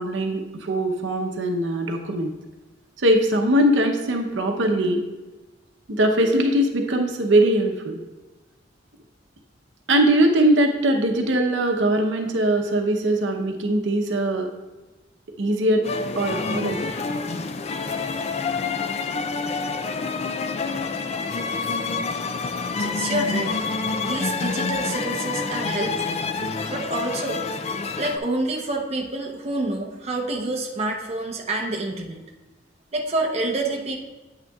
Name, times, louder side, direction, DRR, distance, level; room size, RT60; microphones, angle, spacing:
voice 1, 0.0-2.3 3.0-5.0 5.9-8.0 9.9-14.5 15.4-15.8 16.1-16.8, right 1 dB, 75° right, 3 dB, 0.8 m, -21 dB
sound 1, 15.8-28.2, left 4 dB, 35° left, 0.4 m, -27 dB
voice 2, 22.8-23.6 24.0-26.2 26.7-27.4 28.0-32.2 32.9-34.0, right 2 dB, 35° right, 0 dB, 0.8 m, -27 dB
8.9 x 8.8 x 2.3 m, 1.1 s
head